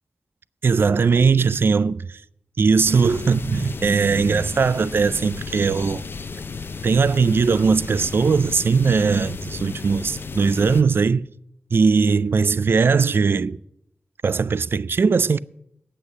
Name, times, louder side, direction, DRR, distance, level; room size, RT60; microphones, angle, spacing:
voice 1, 0.6-2.2 2.6-6.0 6.8-11.2 11.7-13.6 14.2-15.4, right 5 dB, 70° right, 0.3 m, -19 dB
sound 1, 2.8-10.8, left 4 dB, 65° left, 0.6 m, -34 dB
9.6 x 8.3 x 8.6 m
wide cardioid pair, 70°, 4 cm